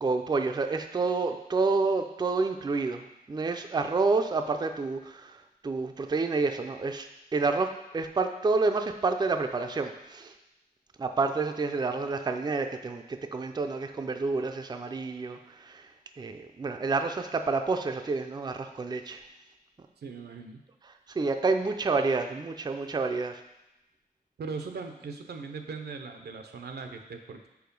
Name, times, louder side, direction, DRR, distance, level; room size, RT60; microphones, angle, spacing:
voice 1, 0.0-5.3 5.6-7.7 7.9-10.3 11.0-15.9 16.2-19.2 21.1-23.3, right 3 dB, 25° right, 6 dB, 0.4 m, -29 dB
voice 2, 20.0-20.6 24.4-27.5, right 4 dB, 85° right, 6 dB, 0.6 m, -39 dB
4.7 x 4.5 x 5.2 m, 0.92 s
wide cardioid pair, 100°, 16 cm